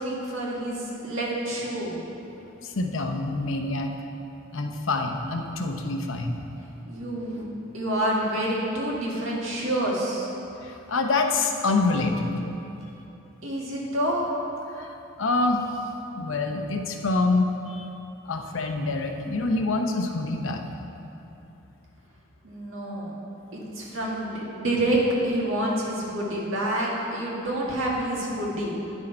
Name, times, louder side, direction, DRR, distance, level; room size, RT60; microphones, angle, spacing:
voice 1, 0.0-2.0 6.9-7.4 7.7-10.3 13.4-14.3 22.4-23.1 23.5-28.7, right 1 dB, 85° right, -4 dB, 1.8 m, -28 dB
voice 2, 2.6-3.9 4.5-6.4 10.6-12.3 14.7-15.6 16.2-17.9 18.3-20.6, left 3 dB, 80° left, 4 dB, 0.7 m, -26 dB
9.9 x 6.2 x 4.4 m, 2.9 s
head